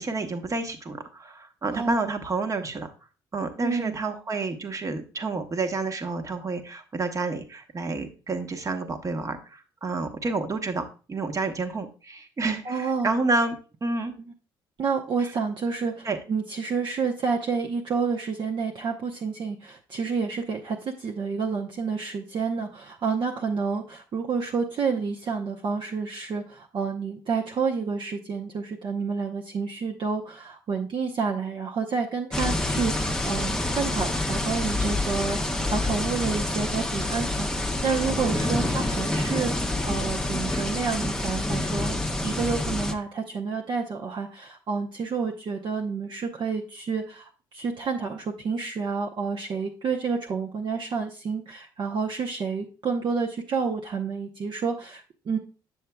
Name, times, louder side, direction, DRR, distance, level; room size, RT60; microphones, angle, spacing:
voice 1, 0.0-2.9 3.3-13.6 13.8-14.1 16.0-16.2, right 3 dB, 35° right, 6 dB, 1.1 m, -29 dB
voice 2, 3.6-3.9 12.6-13.1 14.2-14.3 14.8-42.0 42.2-55.4, right 5 dB, 50° right, 0 dB, 0.8 m, -29 dB
sound 1, 32.3-42.9, left 1 dB, 5° left, 0.8 m, -27 dB
7.4 x 7.1 x 2.3 m, 0.35 s
supercardioid pair, 65°, 10 cm